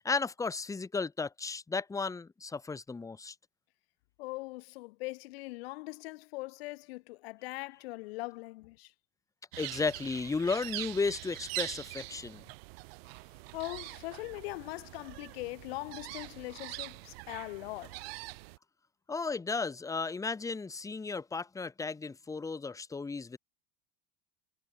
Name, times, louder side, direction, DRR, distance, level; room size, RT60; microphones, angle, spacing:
voice 1, 0.0-3.3 9.6-12.4 19.1-23.4, left 4 dB, 10° left, 1.3 m, -34 dB
voice 2, 4.2-8.9 13.5-18.0, left 22 dB, 85° left, 1.1 m, -41 dB
sound 1, 9.5-18.6, right 24 dB, 80° right, 4.4 m, -43 dB
supercardioid pair, 135°, 30 cm